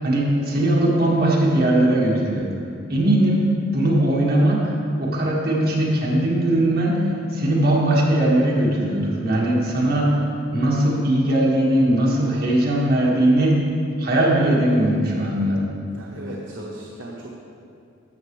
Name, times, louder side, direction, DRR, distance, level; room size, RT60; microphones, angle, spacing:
voice 1, 0.0-2.5 2.9-4.7 5.0-10.1 10.5-13.6 14.0-15.6, right 1 dB, 50° right, -4 dB, 1.8 m, -19 dB
voice 2, 15.9-17.4, right 1 dB, 65° right, -3 dB, 0.9 m, -37 dB
13.0 x 6.9 x 3.3 m, 2.5 s
head